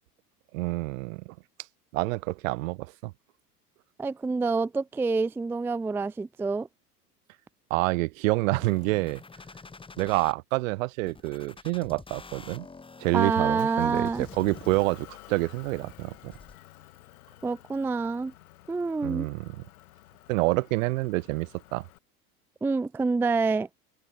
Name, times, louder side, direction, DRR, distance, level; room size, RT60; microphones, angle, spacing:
voice 1, 0.5-1.3 1.9-3.1 7.7-9.2 10.0-12.7 13.0-16.4 19.0-19.6 20.3-21.8, right 23 dB, 55° right, 1.3 m, -28 dB
voice 2, 4.0-6.7 13.1-14.3 17.4-18.3 18.7-19.3 22.6-23.7, right 4 dB, 5° right, 0.5 m, -27 dB
sound 1, 8.6-10.3 11.1-15.1 15.6-16.6, left 4 dB, 10° left, 2.0 m, -47 dB
Motor vehicle (road) / Engine, 13.6-22.0, left 15 dB, 65° left, 7.1 m, -52 dB
open air
figure-of-eight pair, 85°, 47 cm